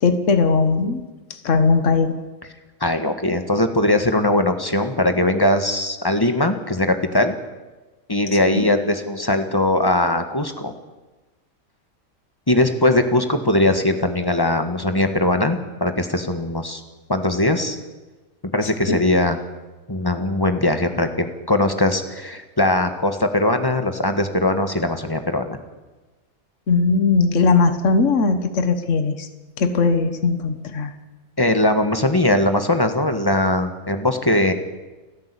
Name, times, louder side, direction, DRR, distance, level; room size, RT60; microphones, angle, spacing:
voice 1, 0.0-1.0 1.3-2.2 8.5-8.6 18.6-19.0 26.7-29.3 29.6-30.9, left 4 dB, 60° left, 9 dB, 1.7 m, -19 dB
voice 2, 2.8-7.3 8.1-10.7 12.5-16.8 17.1-17.8 18.4-19.4 19.9-25.6 31.4-34.5, left 1 dB, 15° left, 7 dB, 1.6 m, -20 dB
30.0 x 10.5 x 8.4 m, 1.2 s
omnidirectional pair, 1.5 m